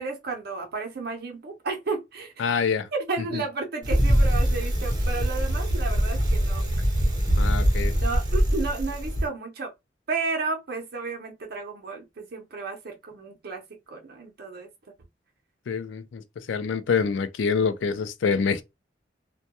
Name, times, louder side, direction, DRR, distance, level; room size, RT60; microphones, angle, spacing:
voice 1, 0.0-2.3 2.9-6.6 8.0-9.7 10.1-13.6 13.9-14.7, right 4 dB, 60° right, 0.6 m, -32 dB
voice 2, 2.4-2.9 3.3-3.4 7.4-8.0 15.7-16.2 16.5-18.6, left 5 dB, 80° left, 0.4 m, -26 dB
Bicycle, 3.8-9.3, equal, 25° right, 0.7 m, -23 dB
2.2 x 2.2 x 2.8 m
head